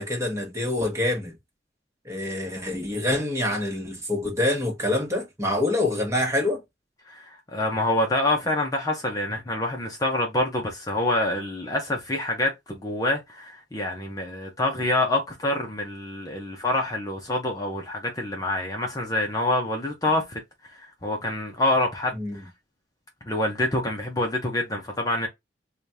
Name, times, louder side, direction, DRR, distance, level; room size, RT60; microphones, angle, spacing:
voice 1, 0.0-1.3 2.0-6.6 20.1-20.2 22.1-22.5, left 1 dB, 15° right, 1.3 m, -26 dB
voice 2, 7.1-22.2 23.2-25.3, left 1 dB, 20° left, 0.8 m, -26 dB
5.1 x 2.4 x 2.7 m
head